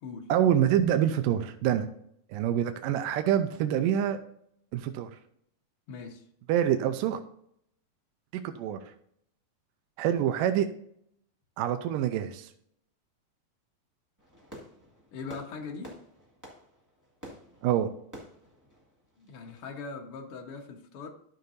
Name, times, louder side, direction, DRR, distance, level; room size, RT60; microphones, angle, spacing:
voice 1, 0.3-1.9 2.3-4.2 4.7-5.1 6.5-7.2 8.3-8.8 10.0-10.7 11.6-12.5 17.6-17.9, right 10 dB, 80° right, 7 dB, 2.1 m, -26 dB
voice 2, 5.9-6.2 15.1-15.9 19.2-21.1, left 4 dB, 75° left, 2 dB, 1.2 m, -40 dB
Fireworks, 14.2-19.8, equal, 15° right, 0.6 m, -50 dB
13.0 x 6.7 x 2.6 m, 0.70 s
omnidirectional pair, 4.3 m